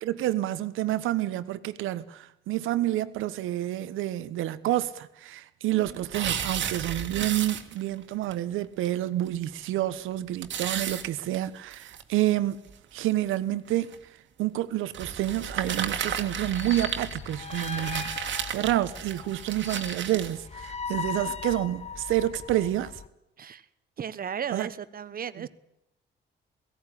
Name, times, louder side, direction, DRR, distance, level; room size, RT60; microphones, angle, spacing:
voice 1, 0.0-12.6 12.9-14.0 14.4-18.2 18.5-23.0 24.5-24.7, right 14 dB, 90° right, 1.1 m, -29 dB
voice 2, 5.7-6.1 21.1-21.4 23.4-23.7 24.0-25.5, right 8 dB, 50° right, 1.2 m, -36 dB
sound 1, 5.8-8.0 8.3-8.4 8.8-8.9 9.3-9.4 10.4-12.0 12.7-12.8 13.7-14.0 14.9-20.4, right 9 dB, 70° right, 2.0 m, -33 dB
sound 2, 15.3-23.1, left 6 dB, 35° left, 1.0 m, -39 dB
17.5 x 16.5 x 9.9 m
cardioid pair, 90°, 20 cm